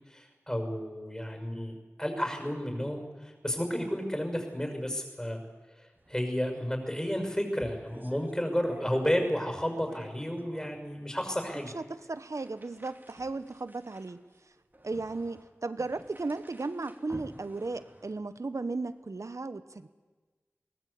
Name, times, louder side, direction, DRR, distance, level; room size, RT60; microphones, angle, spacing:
voice 1, 0.1-1.7 2.0-5.4 5.8-11.7, equal, 15° left, 4 dB, 6.2 m, -32 dB
sound 1, 6.0-6.2 6.5-6.6 7.0-9.4 9.7-10.8 11.4-11.5 12.2-18.2, right 1 dB, 40° right, 2.6 m, -51 dB
voice 2, 11.7-14.2 14.8-19.9, right 3 dB, 80° right, 12 dB, 1.1 m, -35 dB
22.0 x 19.0 x 8.5 m, 1.3 s
wide cardioid pair, 45°, 5 cm